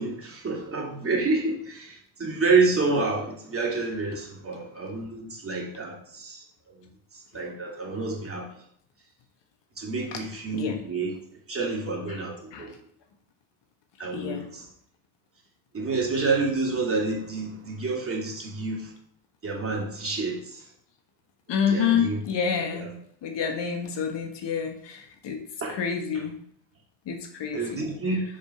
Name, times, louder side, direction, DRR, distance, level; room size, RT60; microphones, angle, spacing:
voice 1, 0.0-6.4 7.1-8.5 9.8-11.2 11.5-12.7 14.0-14.7 15.7-18.9 19.4-20.6 21.7-22.2 22.7-22.9 25.6-25.8 27.5-28.2, right 3 dB, 30° right, -2 dB, 2.6 m, -28 dB
voice 2, 14.1-14.5 21.5-22.9 23.2-25.4 25.7-26.3 27.1-27.9, left 7 dB, 65° left, 4 dB, 1.5 m, -28 dB
7.0 x 5.2 x 5.5 m, 0.66 s
cardioid pair, 110°, 46 cm